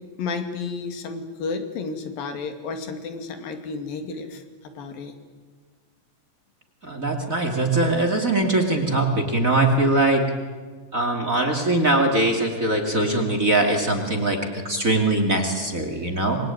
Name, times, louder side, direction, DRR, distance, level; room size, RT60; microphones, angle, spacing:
voice 1, 0.2-4.4 4.8-5.1, left 4 dB, 80° left, 7 dB, 4.1 m, -31 dB
voice 2, 6.8-10.2 10.9-14.4 14.6-16.4, right 2 dB, 25° right, 5 dB, 2.5 m, -21 dB
27.0 x 22.0 x 9.3 m, 1.5 s
omnidirectional pair, 4.0 m